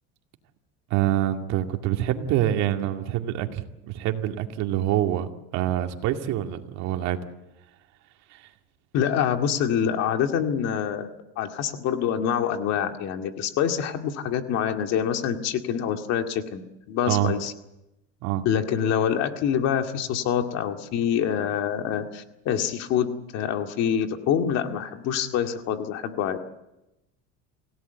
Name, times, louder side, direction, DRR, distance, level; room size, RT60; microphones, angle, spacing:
voice 1, 0.9-5.3 5.5-7.2 8.3-8.5 17.1-17.3 18.2-18.5, right 12 dB, 60° right, 2.3 m, -26 dB
voice 2, 8.9-16.6 16.9-17.5 18.5-26.4, left 8 dB, 55° left, 2.1 m, -26 dB
27.5 x 17.0 x 8.2 m
cardioid pair, 140°, 31 cm